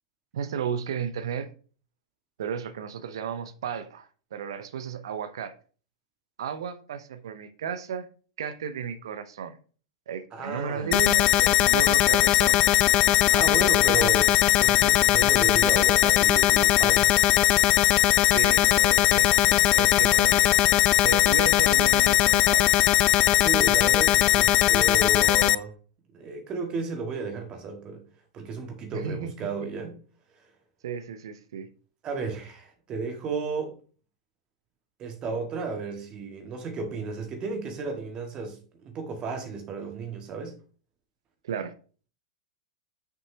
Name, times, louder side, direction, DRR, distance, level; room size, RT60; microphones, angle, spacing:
voice 1, 0.3-1.5 2.4-5.5 6.4-8.1 8.4-9.6 10.1-12.6 18.3-20.7 20.9-22.7 28.9-29.3 30.8-31.7 41.4-41.7, right 7 dB, 65° right, 0.7 m, -34 dB
voice 2, 10.3-11.0 13.3-17.2 23.3-25.7 26.1-28.0 28.3-30.0 32.0-33.8 35.0-40.6, right 4 dB, 30° right, 1.7 m, -33 dB
sound 1, 10.9-25.6, left 15 dB, 35° left, 0.3 m, -20 dB
6.4 x 5.4 x 2.8 m
figure-of-eight pair, 95°, 3 cm